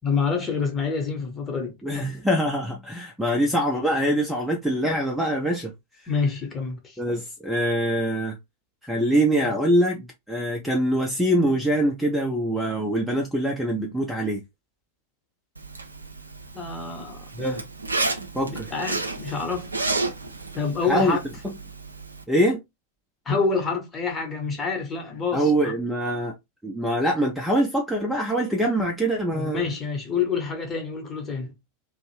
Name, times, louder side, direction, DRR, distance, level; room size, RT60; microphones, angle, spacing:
voice 1, 0.0-1.7 6.1-7.0 16.5-17.3 18.5-19.7 20.5-21.2 23.3-25.7 29.3-31.5, left 5 dB, 20° left, 0.9 m, -27 dB
voice 2, 1.8-5.7 7.0-8.4 8.8-10.0 10.3-14.4 17.3-17.6 18.3-18.7 20.8-21.2 22.3-22.6 25.3-26.4 26.6-29.6, right 1 dB, ahead, 0.5 m, -24 dB
Zipper (clothing), 15.6-22.2, right 3 dB, 80° right, 0.4 m, -32 dB
2.5 x 2.0 x 3.0 m
figure-of-eight pair, 90°, 0 cm